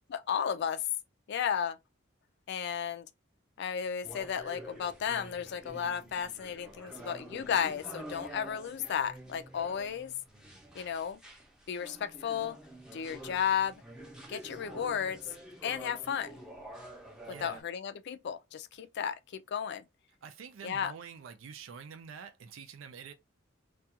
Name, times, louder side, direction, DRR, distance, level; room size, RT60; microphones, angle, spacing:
voice 1, 0.1-0.8 1.3-1.8 2.5-3.1 3.6-10.1 10.7-11.2 11.7-12.6 12.9-13.8 14.3-15.2 15.6-16.4 17.3-19.8 20.6-20.9, left 8 dB, 60° left, 0.4 m, -33 dB
sound 1, 4.0-17.6, right 1 dB, 5° right, 0.6 m, -48 dB
voice 2, 17.3-17.6 20.2-23.1, right 6 dB, 80° right, 0.4 m, -47 dB
2.4 x 2.2 x 2.8 m
head